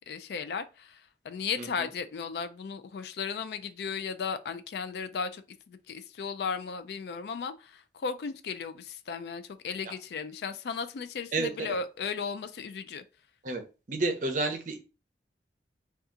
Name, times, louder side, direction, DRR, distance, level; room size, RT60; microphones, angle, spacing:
voice 1, 0.1-13.0, left 5 dB, 65° left, 0.3 m, -35 dB
voice 2, 11.3-11.7 13.4-13.6 13.9-14.8, right 3 dB, 45° right, 0.6 m, -30 dB
2.7 x 2.3 x 3.6 m
head